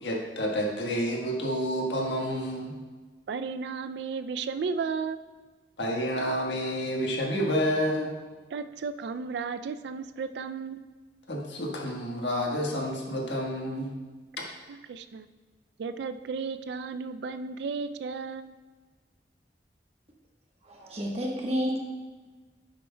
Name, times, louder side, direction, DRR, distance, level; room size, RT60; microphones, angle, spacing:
voice 1, 0.0-2.7 5.8-8.1 11.3-13.9 14.4-14.5, equal, 80° left, 0 dB, 1.4 m, -29 dB
voice 2, 3.3-5.2 8.5-10.9 14.7-15.3 15.8-18.6, right 5 dB, 65° right, 11 dB, 0.3 m, -34 dB
voice 3, 20.7-21.8, equal, 35° right, -1 dB, 1.2 m, -30 dB
9.8 x 7.5 x 2.2 m, 1.3 s
head